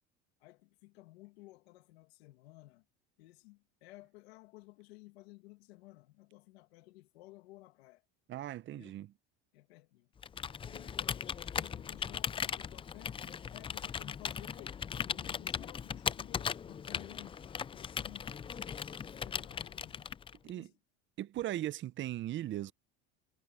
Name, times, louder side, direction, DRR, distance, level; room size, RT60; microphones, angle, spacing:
voice 1, 0.4-2.8 3.2-8.0 8.7-9.0 9.5-10.1 10.6-18.4 19.1-20.1 20.5-20.7, left 21 dB, 90° left, 2.3 m, -55 dB
voice 2, 8.3-9.1 20.4-20.7 21.2-22.7, right 13 dB, 40° right, 0.7 m, -38 dB
Computer keyboard, 10.2-20.5, left 7 dB, 20° left, 0.4 m, -38 dB
supercardioid pair, 110°, 31 cm